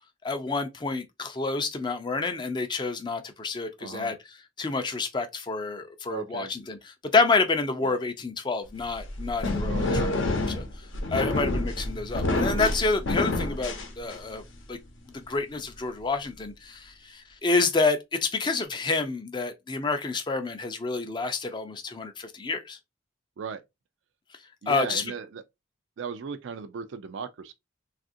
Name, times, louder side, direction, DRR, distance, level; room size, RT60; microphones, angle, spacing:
voice 1, 0.2-14.4 14.7-14.8 15.1-22.8 24.3-24.4 24.7-25.0, left 3 dB, 25° left, 0.4 m, -28 dB
voice 2, 3.8-4.1 6.1-6.5 7.8-8.0 9.7-10.1 11.3-11.4 23.4-23.6 24.6-25.4 26.0-27.5, right 5 dB, 70° right, 0.4 m, -36 dB
sound 1, 8.8-14.5, left 2 dB, 75° left, 0.7 m, -28 dB
3.4 x 2.4 x 2.5 m
head